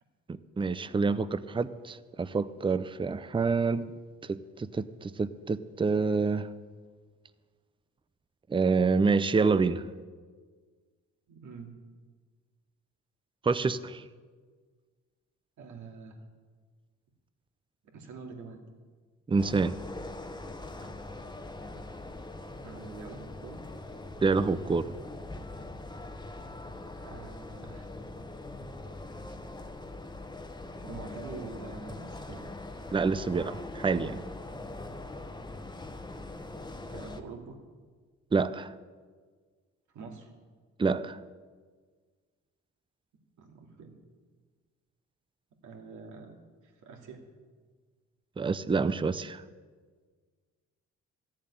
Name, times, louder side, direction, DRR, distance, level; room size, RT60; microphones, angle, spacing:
voice 1, 0.3-3.9 4.3-6.5 8.5-9.8 13.4-14.0 19.3-19.8 24.2-24.9 32.9-34.2 38.3-38.7 40.8-41.2 48.4-49.4, right 4 dB, 15° right, 14 dB, 0.6 m, -27 dB
voice 2, 11.3-11.7 15.6-16.2 17.8-18.6 22.6-23.6 27.0-27.9 30.8-32.4 36.7-37.6 39.9-40.3 43.4-44.0 45.6-47.2, right 4 dB, 75° right, 1 dB, 2.5 m, -45 dB
sound 1, 19.4-37.2, left 2 dB, 15° left, 1.1 m, -42 dB
14.0 x 7.4 x 9.9 m, 1.5 s
cardioid pair, 90°, 30 cm